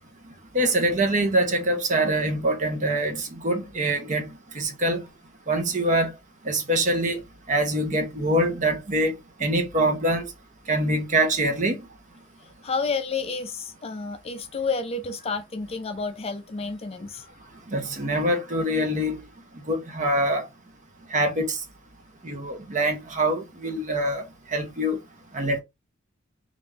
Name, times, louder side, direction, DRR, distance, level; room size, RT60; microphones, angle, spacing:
voice 1, 0.5-4.3 4.5-5.0 5.5-6.1 6.4-7.2 7.5-10.2 10.7-11.8 17.7-19.2 19.7-20.5 21.1-21.6 22.2-24.3 24.5-25.0 25.3-25.6, right 1 dB, 40° right, 0.8 m, -24 dB
voice 2, 12.6-17.3, left 4 dB, 30° left, 0.4 m, -30 dB
3.5 x 2.5 x 3.3 m
head